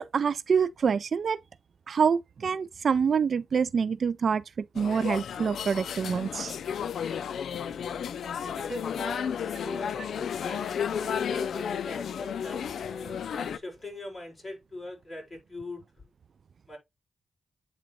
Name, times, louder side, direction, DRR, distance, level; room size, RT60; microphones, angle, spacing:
voice 1, 0.0-1.4 1.9-6.6, right 6 dB, 60° right, 0.3 m, -26 dB
sound 1, 4.7-13.6, left 8 dB, 80° left, 0.4 m, -33 dB
voice 2, 8.3-15.8 16.7-16.8, left 1 dB, 25° left, 4.6 m, -41 dB
8.9 x 3.8 x 3.0 m
cardioid pair, 80°, 0 cm